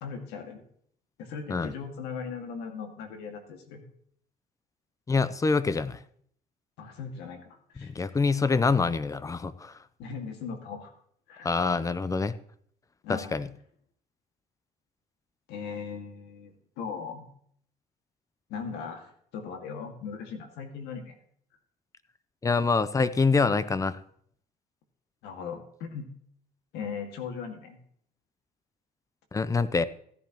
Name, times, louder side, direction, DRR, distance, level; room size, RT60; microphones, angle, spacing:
voice 1, 0.0-0.6 1.2-3.8 6.8-8.1 10.0-10.9 11.3-11.5 13.0-13.3 15.5-17.3 18.5-21.2 25.2-26.1 26.7-27.8, left 6 dB, 90° left, 5 dB, 2.0 m, -38 dB
voice 2, 5.1-6.0 7.8-9.8 11.4-12.3 13.1-13.5 22.4-24.0 29.3-29.8, left 4 dB, 20° left, 15 dB, 0.6 m, -25 dB
15.0 x 10.5 x 3.0 m, 0.63 s
cardioid pair, 110°, 17 cm